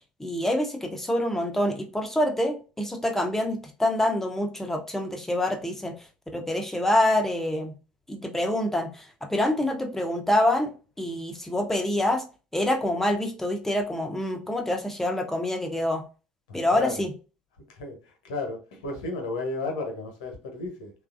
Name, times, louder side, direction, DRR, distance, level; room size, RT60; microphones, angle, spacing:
voice 1, 0.2-5.9 6.3-7.7 8.1-12.2 12.5-16.0 16.5-17.1, left 1 dB, 10° left, 0.6 m, -26 dB
voice 2, 16.5-17.1 17.7-20.9, left 3 dB, 70° left, 0.8 m, -33 dB
3.0 x 2.3 x 2.4 m
figure-of-eight pair, 60°, 4 cm